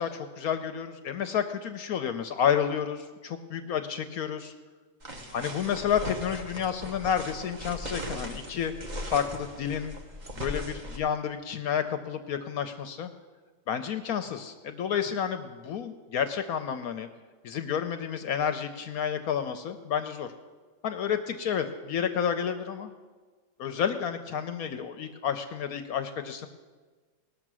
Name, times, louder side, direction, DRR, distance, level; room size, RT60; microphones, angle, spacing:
voice 1, 0.0-4.5 5.3-8.7 9.0-9.9 10.3-13.1 13.7-17.1 17.4-20.3 20.8-22.9 23.6-26.5, left 8 dB, 65° left, 8 dB, 1.0 m, -30 dB
sound 1, 5.0-11.0, equal, 30° right, 1.0 m, -38 dB
19.5 x 6.7 x 6.1 m, 1.4 s
omnidirectional pair, 1.9 m